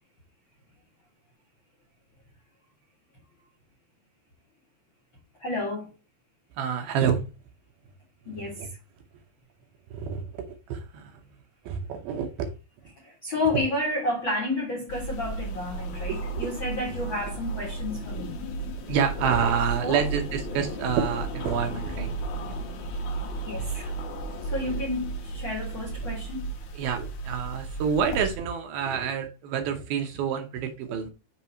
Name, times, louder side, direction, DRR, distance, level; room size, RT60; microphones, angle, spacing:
voice 1, 5.4-5.9 8.2-8.6 13.0-18.3 19.8-20.0 23.4-23.9 24.4-26.5, left 2 dB, 50° left, 1.5 m, -31 dB
voice 2, 6.6-7.2 8.3-8.7 9.9-10.2 10.7-11.1 11.7-12.5 16.1-16.5 18.9-22.2 22.4-22.6 26.0-26.1 26.7-31.1, right 7 dB, 75° right, 2.6 m, -28 dB
sound 1, 14.9-28.4, right 2 dB, 65° left, 2.0 m, -34 dB
7.0 x 3.3 x 4.3 m
omnidirectional pair, 4.7 m